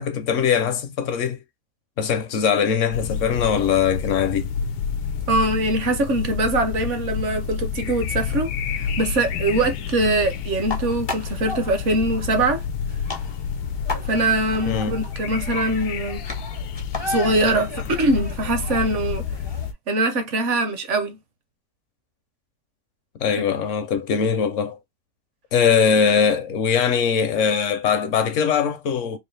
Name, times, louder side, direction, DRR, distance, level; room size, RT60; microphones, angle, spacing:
voice 1, 0.0-1.4 2.0-4.5 14.6-15.0 23.2-24.8 25.5-29.2, left 7 dB, 65° left, 0.8 m, -21 dB
sound 1, 2.9-19.7, left 6 dB, 90° left, 1.2 m, -29 dB
voice 2, 5.3-8.5 8.7-12.6 14.1-16.2 17.1-19.2 19.9-21.2, right 2 dB, 60° right, 0.9 m, -22 dB
sound 2, 8.2-19.7, left 3 dB, 40° left, 0.3 m, -36 dB
3.9 x 2.4 x 3.2 m
omnidirectional pair, 1.7 m